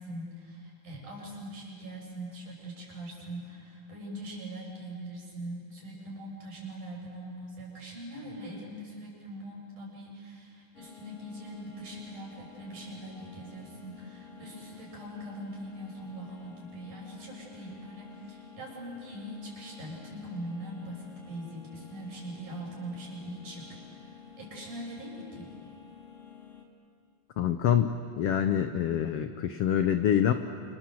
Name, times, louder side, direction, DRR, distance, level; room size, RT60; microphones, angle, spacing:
voice 1, 0.0-23.8 24.4-25.5, right 1 dB, 65° right, -2 dB, 8.6 m, -42 dB
sound 1, 10.7-26.6, left 7 dB, 25° left, 2.5 m, -50 dB
voice 2, 27.4-30.3, left 9 dB, 80° left, 8 dB, 1.3 m, -26 dB
28.5 x 27.0 x 7.7 m, 2.2 s
omnidirectional pair, 3.9 m